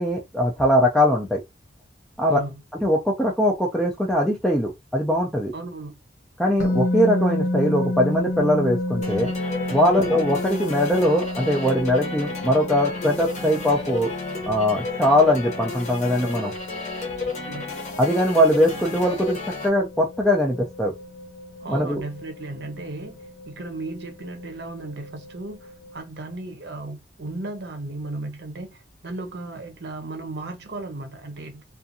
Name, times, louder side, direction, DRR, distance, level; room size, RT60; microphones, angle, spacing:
voice 1, 0.0-1.4 2.2-2.4 2.8-5.5 6.4-9.3 9.7-14.1 14.5-16.5 18.0-20.9 21.7-22.0, equal, 5° left, 0.4 m, -21 dB
voice 2, 2.3-2.6 5.5-6.0 9.9-10.2 17.2-17.7 21.6-31.6, right 2 dB, 60° right, 0.7 m, -35 dB
sound 1, 6.6-26.0, left 1 dB, 70° left, 1.2 m, -31 dB
sound 2, 9.0-19.7, left 4 dB, 40° left, 0.8 m, -33 dB
2.6 x 2.4 x 2.7 m
head